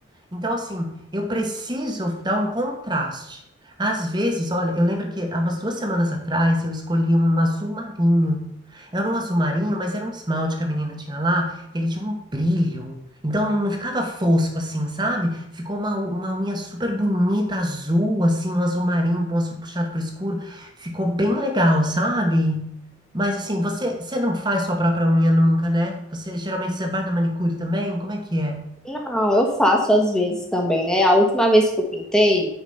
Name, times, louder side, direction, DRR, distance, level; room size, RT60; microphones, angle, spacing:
voice 1, 0.3-3.4 3.6-13.0 13.2-22.8 23.1-28.7, equal, 20° right, 3 dB, 1.3 m, -23 dB
voice 2, 28.9-32.5, equal, 5° left, 0 dB, 1.4 m, -19 dB
9.7 x 5.1 x 5.6 m, 0.77 s
head